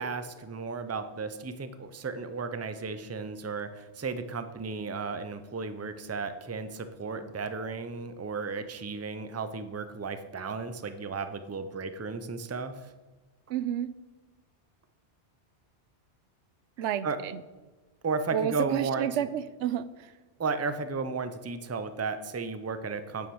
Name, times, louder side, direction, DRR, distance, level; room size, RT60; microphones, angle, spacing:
voice 1, 0.0-12.9 17.0-17.2 18.0-19.3 20.4-23.3, right 4 dB, 20° right, 11 dB, 0.4 m, -34 dB
voice 2, 13.5-13.9 16.8-17.4 18.3-20.1, right 10 dB, 85° right, 14 dB, 0.9 m, -30 dB
9.3 x 7.0 x 6.2 m, 1.2 s
omnidirectional pair, 1.1 m